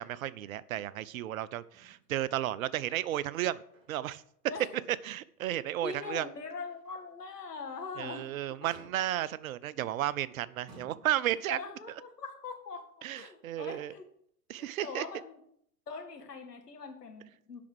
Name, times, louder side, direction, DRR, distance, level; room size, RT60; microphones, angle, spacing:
voice 1, 0.0-3.6 3.9-4.2 5.0-6.3 8.0-11.6 13.0-13.9 14.5-15.0, right 13 dB, 60° right, 18 dB, 0.6 m, -33 dB
Motor vehicle (road), 1.7-2.3 2.6-2.8 3.3-4.2 4.6-4.8 5.3-5.4 7.6-8.1 8.7-9.3 10.1-10.3 10.7-11.5 12.5-12.6, right 3 dB, 35° right, 3.9 m, -57 dB
voice 2, 5.8-8.3 8.6-8.9 11.5-14.0 14.6-15.4 15.9-17.6, left 4 dB, 80° left, 4 dB, 1.9 m, -42 dB
8.4 x 6.1 x 7.7 m, 0.68 s
figure-of-eight pair, 90°, 47 cm